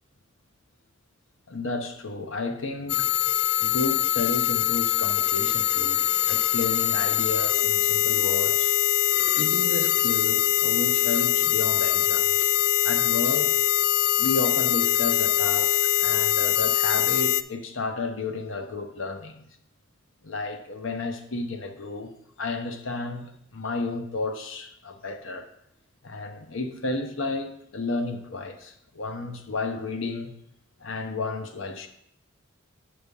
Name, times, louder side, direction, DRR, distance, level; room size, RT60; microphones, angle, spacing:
voice 1, 1.5-8.7 9.3-12.5 12.8-13.5 14.2-19.5 20.2-22.1 22.4-25.5 26.0-30.3 30.8-31.9, left 3 dB, 70° left, 0.9 m, -32 dB
sound 1, 2.9-17.4, left 12 dB, 50° left, 0.3 m, -23 dB
7.2 x 5.1 x 5.4 m
head